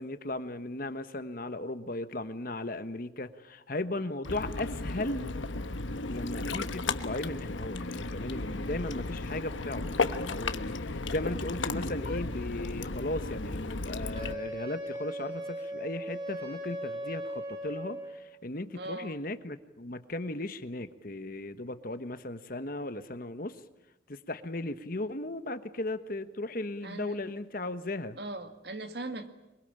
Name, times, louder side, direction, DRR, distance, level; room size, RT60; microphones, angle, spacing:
voice 1, 0.0-5.3 6.1-23.6 24.1-28.2, left 2 dB, 50° left, 11 dB, 1.3 m, -36 dB
Ocean, 4.2-14.3, left 3 dB, 90° left, 1.2 m, -34 dB
Wind instrument woodwind instrument, 14.1-18.3, equal, 20° right, 5.2 m, -38 dB
voice 2, 18.7-19.2 26.8-27.2 28.2-29.3, right 2 dB, 60° right, 8 dB, 2.0 m, -39 dB
24.0 x 22.5 x 8.9 m, 0.95 s
head